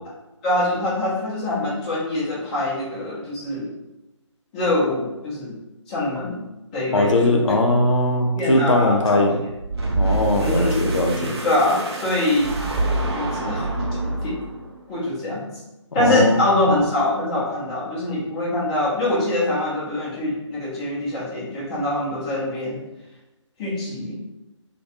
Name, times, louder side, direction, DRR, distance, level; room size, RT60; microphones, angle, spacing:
voice 1, 0.4-3.7 4.5-5.5 5.9-6.4 6.7-7.6 8.3-9.3 10.4-10.8 11.4-12.5 13.1-13.7 14.0-14.4 14.9-15.5 15.9-22.8 23.6-24.1, left 1 dB, 15° left, -8 dB, 0.5 m, -24 dB
voice 2, 6.9-9.4 10.0-11.3 16.0-16.4, left 1 dB, 80° left, 2 dB, 0.5 m, -20 dB
sound 1, 9.5-14.7, right 2 dB, 55° right, 0.5 m, -26 dB
2.2 x 2.2 x 2.7 m, 0.98 s
figure-of-eight pair, 150°, 16 cm